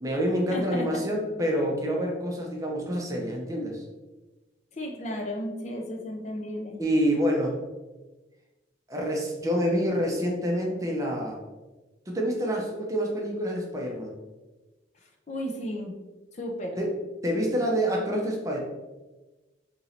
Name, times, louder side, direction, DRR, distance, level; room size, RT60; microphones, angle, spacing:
voice 1, 0.0-3.8 6.8-7.6 8.9-11.4 12.1-14.1 16.8-17.0 17.2-18.6, equal, 20° right, -1 dB, 0.6 m, -27 dB
voice 2, 0.5-1.0 4.7-6.8 15.3-15.9 16.4-16.8, equal, 40° left, 2 dB, 0.4 m, -34 dB
3.0 x 2.6 x 4.1 m, 1.2 s
head